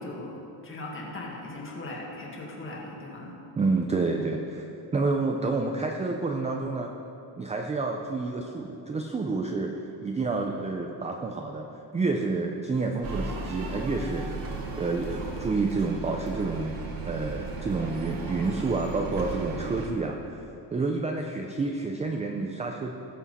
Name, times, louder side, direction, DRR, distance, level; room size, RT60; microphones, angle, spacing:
voice 1, 0.0-3.4, left 2 dB, 25° left, -2 dB, 1.8 m, -39 dB
voice 2, 3.6-4.7 4.9-6.9 7.4-11.7 11.9-14.5 14.8-20.4 20.7-22.9, right 3 dB, 15° right, 2 dB, 0.4 m, -29 dB
sound 1, 13.0-19.9, right 3 dB, 50° right, 1.6 m, -35 dB
19.5 x 7.3 x 4.1 m, 2.8 s
cardioid pair, 180°, 46 cm